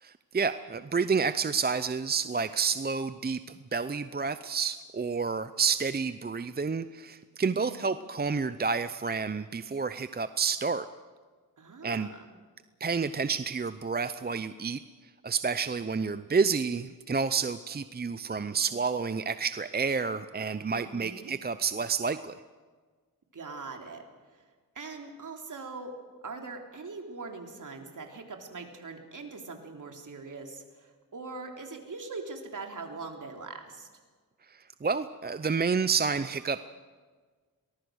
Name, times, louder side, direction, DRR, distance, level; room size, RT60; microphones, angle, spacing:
voice 1, 0.0-3.4 3.7-10.9 11.8-12.1 12.8-14.8 15.2-22.3 34.8-36.6, right 5 dB, 25° right, 12 dB, 0.6 m, -29 dB
voice 2, 7.6-7.9 11.6-12.4 20.7-21.3 23.3-24.0 24.3-24.4 24.8-25.9 26.2-33.9, right 3 dB, 55° right, 3 dB, 3.5 m, -42 dB
24.0 x 19.5 x 6.4 m, 1.5 s
wide cardioid pair, 85°, 37 cm